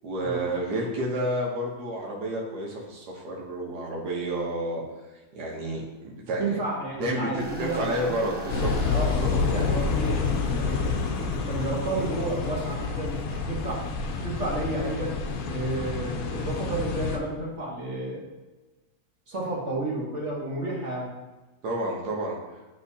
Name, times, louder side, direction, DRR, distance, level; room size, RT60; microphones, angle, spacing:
voice 1, 0.0-4.8 5.3-6.6 7.0-9.3 21.6-22.4, right 1 dB, 85° right, -2 dB, 1.6 m, -30 dB
voice 2, 6.4-8.6 8.9-10.3 10.6-10.9 11.5-13.9 14.2-15.1 15.5-18.2 19.3-21.1, right 2 dB, 50° right, -3 dB, 1.7 m, -31 dB
sound 1, 7.4-15.8, right 1 dB, 10° right, 0.8 m, -39 dB
sound 2, 8.5-17.2, left 5 dB, 70° left, 1.1 m, -28 dB
10.5 x 3.6 x 2.7 m, 1.2 s
omnidirectional pair, 1.7 m